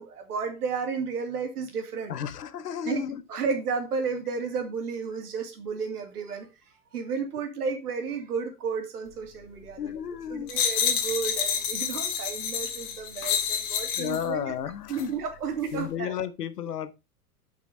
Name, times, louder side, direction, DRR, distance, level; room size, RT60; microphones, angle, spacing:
voice 1, 0.0-2.1 2.8-3.0 3.3-14.5 14.9-16.2, right 5 dB, 75° right, 2.6 m, -32 dB
voice 2, 2.1-3.2 9.8-10.5 14.0-15.1 15.7-16.9, left 9 dB, 80° left, 1.0 m, -32 dB
sound 1, 10.5-14.2 14.9-15.1, left 8 dB, 45° left, 2.0 m, -28 dB
6.0 x 6.0 x 5.3 m
hypercardioid pair, 95°, 46 cm